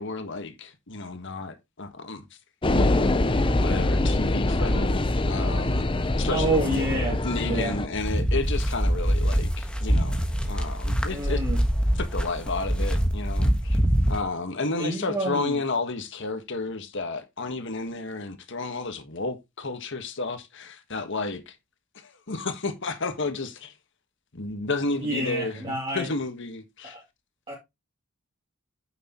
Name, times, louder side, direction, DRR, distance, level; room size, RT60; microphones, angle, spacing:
voice 1, 0.0-2.2 3.6-6.9 7.2-11.4 12.0-13.8 14.1-21.5 21.9-23.7 24.3-25.6 25.9-26.9, left 3 dB, 60° left, 1.5 m, -32 dB
sound 1, 2.6-7.9, left 2 dB, 25° left, 0.6 m, -24 dB
voice 2, 6.3-7.8 11.1-11.6 14.8-15.6 25.0-26.1 26.8-27.0 27.5-27.6, right 1 dB, 25° right, 2.9 m, -28 dB
sound 2, 7.9-14.2, equal, 5° left, 1.3 m, -24 dB
9.2 x 6.6 x 3.0 m
head